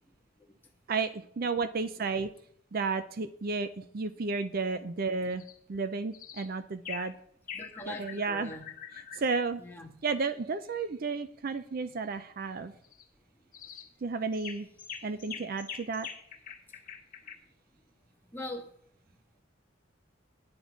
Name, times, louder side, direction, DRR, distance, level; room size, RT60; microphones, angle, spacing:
voice 1, 0.9-2.3 2.7-5.4 5.7-7.1 7.9-8.5 9.1-9.6 10.0-12.7 14.0-14.7 15.0-16.1, right 4 dB, 50° right, 11 dB, 0.5 m, -32 dB
sound 1, 5.3-5.6 6.1-6.5 6.8-7.1 7.5-9.3 12.8-13.0 13.5-13.9 14.3-17.3, left 7 dB, 45° left, 1.4 m, -44 dB
voice 2, 7.5-8.7 9.6-9.9 13.7-13.8 18.3-18.7, left 2 dB, 10° left, 1 dB, 1.6 m, -42 dB
9.7 x 9.1 x 5.1 m, 0.66 s
head